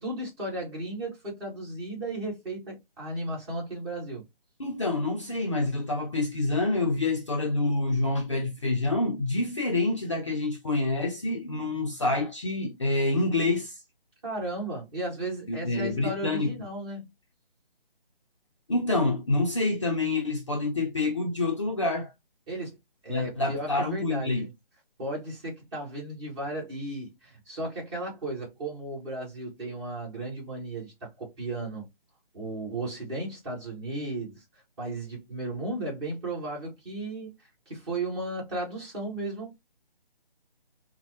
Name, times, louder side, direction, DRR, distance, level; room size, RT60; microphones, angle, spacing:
voice 1, 0.0-4.3 14.2-17.1 22.5-22.8 23.0-24.5 25.0-31.8 32.3-34.4 34.8-37.3 37.7-39.6, right 2 dB, 25° right, 1.9 m, -35 dB
voice 2, 4.6-13.8 15.5-16.5 18.7-22.1 23.1-24.5, left 2 dB, 35° left, 0.5 m, -27 dB
4.2 x 2.1 x 2.7 m
figure-of-eight pair, 160°, 29 cm